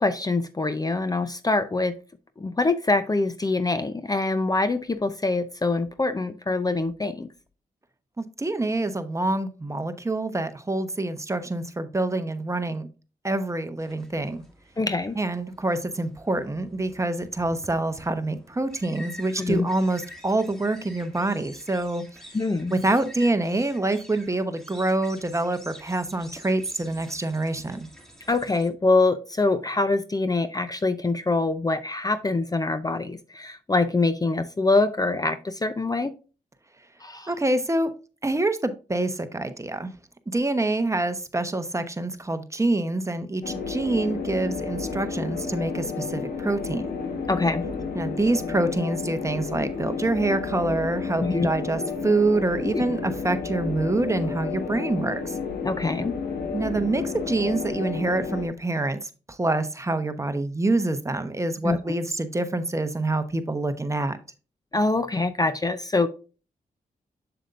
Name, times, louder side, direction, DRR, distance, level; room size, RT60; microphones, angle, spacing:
voice 1, 0.0-2.0 2.4-7.3 14.8-15.2 19.4-19.7 22.3-22.7 28.3-36.1 37.0-37.3 47.3-47.7 51.2-51.5 52.6-52.8 55.6-56.1 61.6-61.8 64.7-66.1, left 3 dB, 25° left, 11 dB, 0.6 m, -24 dB
voice 2, 8.2-12.9 13.2-14.4 15.2-22.0 22.7-27.9 37.3-37.9 38.2-39.9 40.3-46.9 47.9-55.3 56.5-64.2, right 2 dB, 20° right, 9 dB, 1.0 m, -26 dB
sound 1, 13.8-28.7, equal, 5° left, 2.7 m, -48 dB
sound 2, 43.4-58.5, left 5 dB, 85° left, 1.5 m, -31 dB
7.3 x 6.9 x 2.5 m, 0.34 s
cardioid pair, 70°, 15 cm